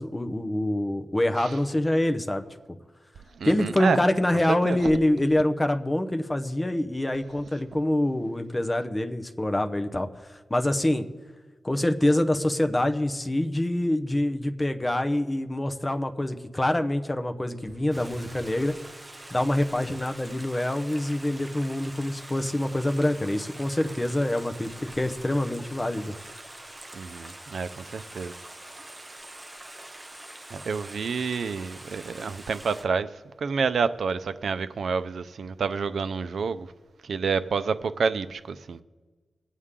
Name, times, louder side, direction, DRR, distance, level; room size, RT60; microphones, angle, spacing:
voice 1, 0.0-2.4 3.4-10.1 10.5-11.1 11.6-18.7 19.3-26.1, left 1 dB, 15° left, 0.8 m, -25 dB
voice 2, 3.4-4.0 4.6-4.8 26.9-28.3 30.5-33.1 33.4-36.7 37.1-38.8, right 5 dB, 70° right, 0.5 m, -28 dB
Stream, 17.9-32.8, right 1 dB, 15° right, 0.8 m, -44 dB
22.5 x 8.2 x 3.7 m
wide cardioid pair, 140°, 0 cm